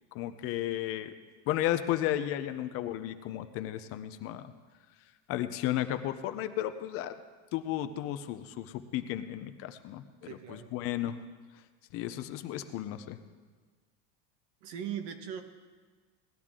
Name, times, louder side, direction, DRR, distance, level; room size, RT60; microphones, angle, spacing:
voice 1, 0.1-1.1 1.5-4.5 5.3-7.2 7.5-10.0 10.5-11.2 11.9-13.2, left 12 dB, 40° left, 10 dB, 0.6 m, -33 dB
voice 2, 10.2-10.7 14.6-15.4, right 9 dB, 60° right, 7 dB, 1.3 m, -39 dB
18.5 x 12.0 x 3.7 m, 1.5 s
cardioid pair, 165°, 36 cm